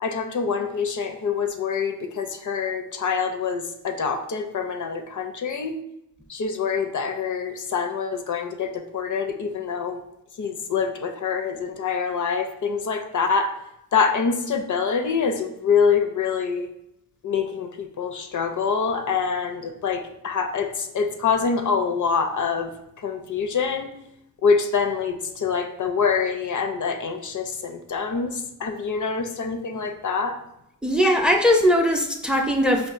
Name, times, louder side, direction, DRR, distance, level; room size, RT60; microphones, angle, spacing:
voice 1, 0.0-5.8 6.3-10.0 10.4-13.6 13.9-16.7 17.2-22.7 23.0-23.9 24.4-30.4, left 5 dB, 60° left, 6 dB, 0.4 m, -25 dB
voice 2, 30.8-32.9, equal, 5° right, 3 dB, 0.5 m, -19 dB
4.5 x 2.3 x 2.4 m, 0.81 s
cardioid pair, 40°, 34 cm